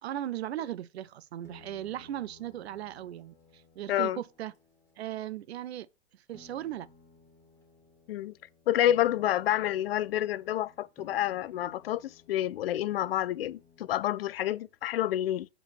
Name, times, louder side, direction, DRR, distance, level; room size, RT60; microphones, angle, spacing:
voice 1, 0.0-4.5 5.0-5.9 6.1-6.9, right 12 dB, 65° right, 0.7 m, -37 dB
sound 1, 1.4-5.3 6.3-14.1, left 4 dB, 10° left, 2.0 m, -58 dB
voice 2, 3.9-4.2 8.1-8.3 8.7-15.5, left 12 dB, 60° left, 0.4 m, -29 dB
6.9 x 4.5 x 5.9 m
hypercardioid pair, 120°, 34 cm